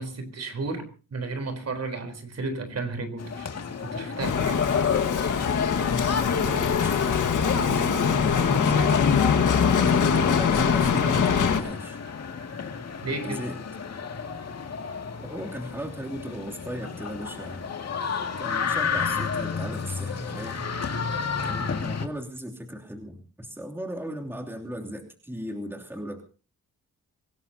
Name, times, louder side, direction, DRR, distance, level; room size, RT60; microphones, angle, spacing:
voice 1, 0.0-3.5 3.8-4.9 13.0-13.4, right 3 dB, 50° right, 4.0 m, -33 dB
sound 1, 3.2-22.1, left 6 dB, 50° left, 2.3 m, -32 dB
Bicycle, 4.2-11.6, left 6 dB, 65° left, 1.8 m, -23 dB
voice 2, 6.4-9.4 9.8-12.0 13.2-13.6 15.3-17.6 18.4-20.6 21.4-26.2, equal, 5° right, 3.0 m, -36 dB
25.0 x 18.0 x 2.9 m
wide cardioid pair, 135°, 32 cm